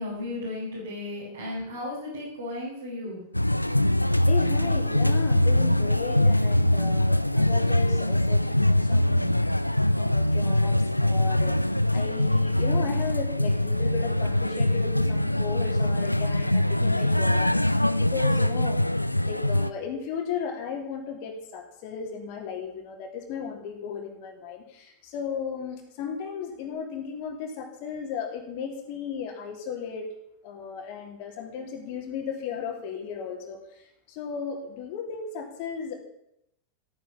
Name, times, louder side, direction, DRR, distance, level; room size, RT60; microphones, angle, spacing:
voice 1, 0.0-3.2, left 2 dB, 70° right, -6 dB, 5.5 m, -34 dB
sound 1, 3.3-19.7, left 1 dB, 90° left, 0.4 m, -23 dB
voice 2, 4.3-9.4 9.9-11.6 11.9-18.9 19.2-30.1 30.4-35.9, left 6 dB, 45° left, 2 dB, 3.1 m, -35 dB
14.0 x 9.3 x 7.1 m, 0.78 s
figure-of-eight pair, 90°, 0 cm